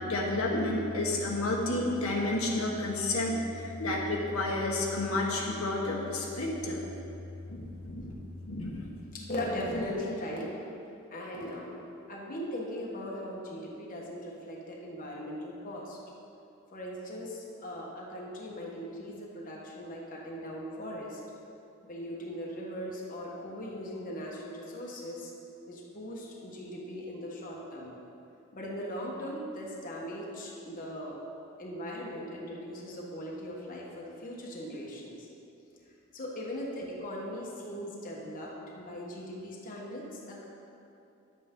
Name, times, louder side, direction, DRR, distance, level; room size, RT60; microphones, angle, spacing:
voice 1, 0.1-3.4 3.8-6.8 7.6-8.1 8.5-8.8, left 2 dB, 80° left, -2 dB, 1.3 m, -30 dB
voice 2, 9.1-10.5 11.1-11.8 12.1-16.0 16.7-21.2 21.9-25.3 25.7-27.9 28.5-31.2 31.6-35.3 36.1-40.5, equal, 40° left, -3 dB, 1.2 m, -39 dB
10.5 x 8.0 x 3.7 m, 2.7 s
head